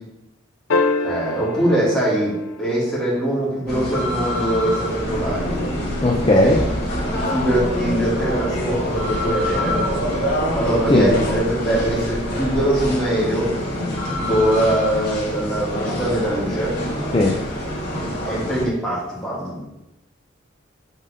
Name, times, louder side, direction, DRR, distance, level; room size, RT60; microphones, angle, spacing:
sound 1, 0.7-3.2 5.4-5.5, left 3 dB, 75° left, 0.5 m, -25 dB
voice 1, 1.0-5.6 6.4-6.5 7.1-9.8 10.5-16.7 18.2-19.7, right 1 dB, 5° left, -8 dB, 2.2 m, -22 dB
sound 2, 3.7-18.6, left 1 dB, 50° left, 2.4 m, -26 dB
sound 3, 5.0-12.9, equal, 80° right, 1.9 m, -31 dB
voice 2, 6.0-6.6 10.9-11.1 17.1-17.3, left 1 dB, 25° left, -1 dB, 0.5 m, -16 dB
5.4 x 4.0 x 4.9 m, 0.91 s
head